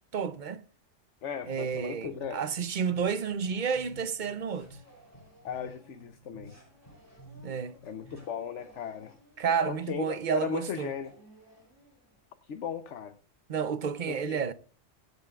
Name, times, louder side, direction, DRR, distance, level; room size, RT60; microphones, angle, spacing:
voice 1, 0.1-0.6 1.5-4.7 7.4-7.8 9.4-10.9 13.5-14.5, right 6 dB, 45° right, 0.8 m, -31 dB
voice 2, 1.2-2.4 5.4-6.6 7.8-9.2 9.7-11.1 12.4-13.2 14.1-14.4, left 8 dB, 70° left, 1.1 m, -37 dB
sound 1, 1.9-8.6, right 2 dB, 30° left, 3.0 m, -53 dB
sound 2, 2.6-10.2 10.6-10.7 11.0-12.3, equal, 15° right, 5.5 m, -60 dB
22.5 x 9.2 x 2.4 m
omnidirectional pair, 1.3 m